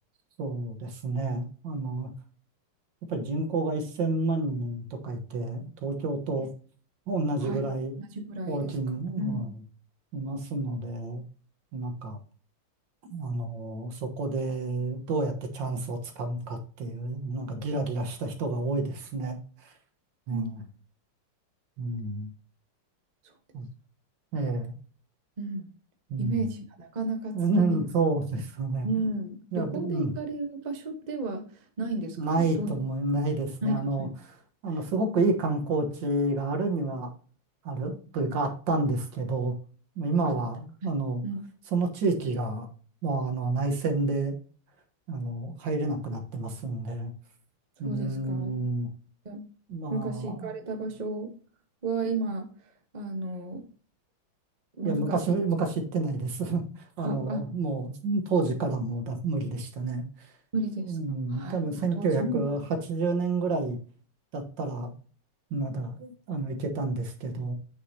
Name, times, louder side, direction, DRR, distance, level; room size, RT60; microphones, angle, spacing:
voice 1, 0.4-2.1 3.1-6.5 7.1-7.9 8.5-9.5 10.1-11.2 11.7-12.2 13.1-19.7 20.3-20.6 21.8-22.3 23.5-23.7 24.3-24.8 26.1-26.5 27.3-28.9 29.5-30.1 32.2-34.1 34.6-37.1 37.6-39.6 40.0-41.2 41.7-42.7 43.0-44.3 45.1-47.1 47.8-48.9 49.7-50.5 54.8-60.3 60.8-63.8 64.3-64.9 65.5-67.5, right 3 dB, 60° right, 5 dB, 1.8 m, -29 dB
voice 2, 8.0-8.7 9.2-9.6 20.3-20.5 23.2-23.3 25.4-25.7 26.2-27.8 28.8-32.7 33.6-34.1 40.2-40.3 40.8-40.9 41.2-41.4 47.8-48.5 49.2-49.4 49.9-51.3 51.8-52.5 52.9-53.6 54.8-55.4 57.0-57.4 60.5-61.0 61.3-62.4, right 2 dB, 30° right, 5 dB, 0.8 m, -33 dB
8.2 x 6.4 x 2.8 m, 0.40 s
omnidirectional pair, 2.4 m